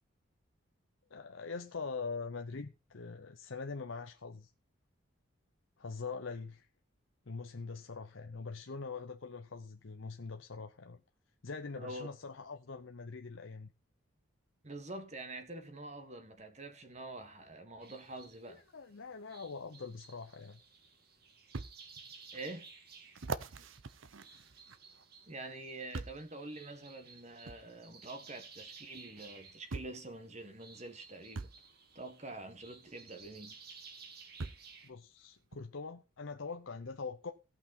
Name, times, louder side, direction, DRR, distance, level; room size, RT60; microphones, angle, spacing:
voice 1, 1.1-4.5 5.8-6.7 7.3-11.0 11.4-13.7 18.5-20.6 34.8-37.3, left 4 dB, 70° left, 0.7 m, -43 dB
voice 2, 11.8-12.1 14.6-18.6 22.3-22.7 25.3-31.5 31.9-33.6, right 2 dB, 35° right, 1.7 m, -46 dB
sound 1, 17.8-34.9, right 5 dB, 50° right, 1.9 m, -56 dB
sound 2, 20.4-20.5 21.5-21.7 22.3-22.4 23.1-25.0 25.9-26.3 27.5-27.6 28.9-29.0 29.7-30.0 31.3-31.6 33.2-33.3 34.4-34.7 35.5-35.6, right 3 dB, 70° right, 0.8 m, -42 dB
17.5 x 5.9 x 4.3 m
head